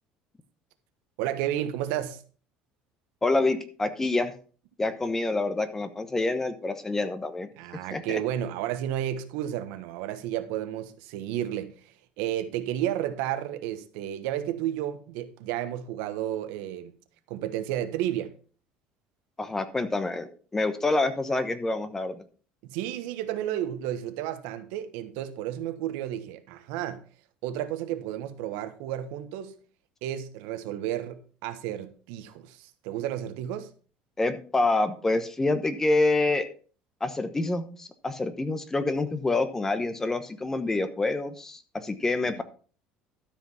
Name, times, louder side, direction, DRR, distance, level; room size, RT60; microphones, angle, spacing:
voice 1, 1.2-2.2 7.6-11.7 12.2-17.0 17.3-18.3 22.6-27.0 27.4-29.5 30.0-33.7 42.3-42.4, right 11 dB, 85° right, 1.3 m, -32 dB
voice 2, 3.2-4.3 4.8-7.5 7.9-8.2 19.4-22.2 34.2-36.5 37.0-42.4, left 2 dB, 15° left, 1.1 m, -27 dB
13.0 x 5.2 x 5.7 m
cardioid pair, 135°, 3 cm